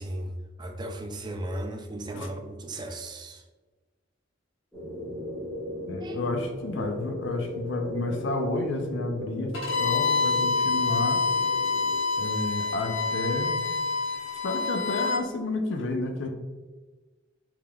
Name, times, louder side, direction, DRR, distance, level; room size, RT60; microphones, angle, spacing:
voice 1, 0.0-3.4 6.0-6.2, right 1 dB, 20° right, 5 dB, 0.3 m, -36 dB
sound 1, 4.7-12.0, left 1 dB, 5° left, 1.2 m, -37 dB
voice 2, 5.9-11.3 12.2-13.7 14.4-16.3, left 2 dB, 65° left, 5 dB, 0.5 m, -31 dB
Bowed string instrument, 9.5-15.2, left 4 dB, 90° left, 1.1 m, -27 dB
4.8 x 3.6 x 2.3 m, 1.3 s
head